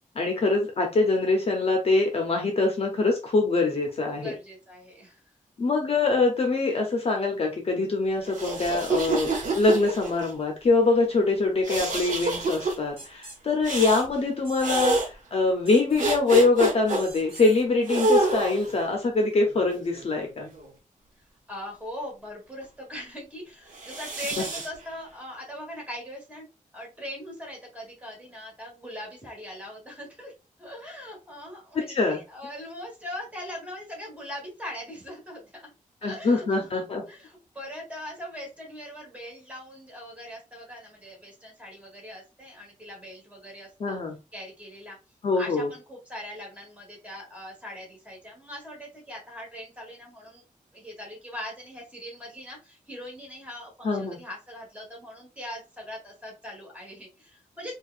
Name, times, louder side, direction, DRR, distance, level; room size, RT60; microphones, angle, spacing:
voice 1, 0.2-4.3 5.6-20.5 31.9-32.2 36.0-37.0 43.8-44.2 45.2-45.7 53.8-54.2, left 3 dB, 45° left, 2 dB, 0.7 m, -24 dB
voice 2, 4.0-5.2 21.5-26.4 26.7-30.3 30.6-35.7 36.0-36.8 37.1-44.0 44.3-45.0 45.4-50.4 50.7-57.8, left 1 dB, 10° right, -3 dB, 1.5 m, -41 dB
sound 1, 8.3-10.3 11.6-12.7 13.6-14.1 14.6-15.1 16.0-17.0 17.9-18.8 19.6-20.7 23.7-24.7, right 2 dB, 65° right, 1.0 m, -27 dB
sound 2, 12.2-12.3 13.0-13.4 13.8-14.0 14.4-15.0 15.7-16.1 17.0-17.6, right 2 dB, 40° right, 1.1 m, -45 dB
4.5 x 2.3 x 2.4 m, 0.29 s
wide cardioid pair, 180°, 14 cm